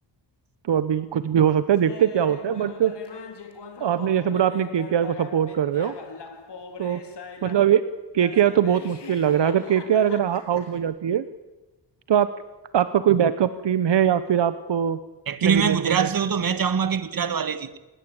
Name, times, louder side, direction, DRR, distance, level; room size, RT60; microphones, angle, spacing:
voice 1, 0.7-2.9 3.8-6.0 6.8-7.0 7.4-7.8 8.1-11.3 12.1-12.3 12.7-15.0 15.4-16.1, right 9 dB, 75° right, 1.1 m, -21 dB
Laughter, 1.8-7.8 8.2-10.8, left 5 dB, 70° left, 3.9 m, -41 dB
voice 2, 15.3-17.8, right 6 dB, 50° right, 1.8 m, -23 dB
26.5 x 21.0 x 8.9 m
wide cardioid pair, 125°, 43 cm